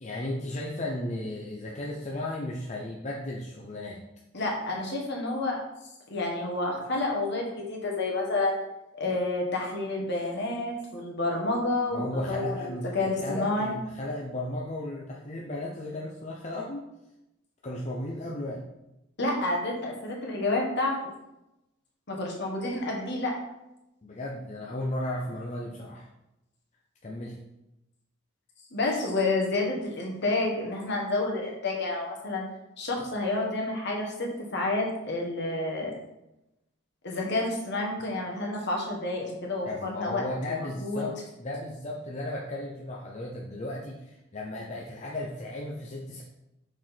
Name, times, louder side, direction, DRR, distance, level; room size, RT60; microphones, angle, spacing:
voice 1, 0.0-4.0 11.9-16.8 17.6-18.6 24.0-26.1 27.0-27.4 38.2-38.4 39.6-46.2, left 1 dB, 35° left, -3 dB, 0.8 m, -35 dB
voice 2, 4.3-5.6 6.1-8.5 8.9-13.7 19.2-21.0 22.1-23.3 28.7-32.4 32.8-35.9 37.0-41.0, left 2 dB, 60° left, -1 dB, 1.7 m, -29 dB
6.3 x 4.7 x 4.4 m, 0.91 s
head